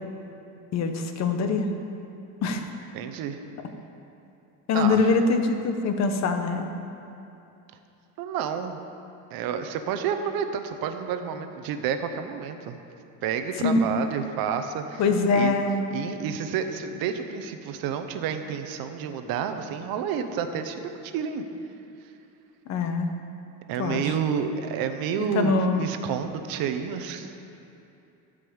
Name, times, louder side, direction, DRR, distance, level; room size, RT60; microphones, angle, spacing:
voice 1, 0.7-1.7 2.4-2.7 4.7-6.7 13.6-13.8 15.0-15.8 22.7-23.1 23.8-24.0 25.3-25.8, left 4 dB, 45° left, 6 dB, 1.0 m, -23 dB
voice 2, 2.9-3.4 4.7-5.1 8.2-8.8 9.3-12.8 13.2-15.0 15.3-15.6 15.9-21.4 23.7-27.3, right 7 dB, 70° right, 7 dB, 0.9 m, -30 dB
13.0 x 5.2 x 8.0 m, 2.8 s
cardioid pair, 150°, 36 cm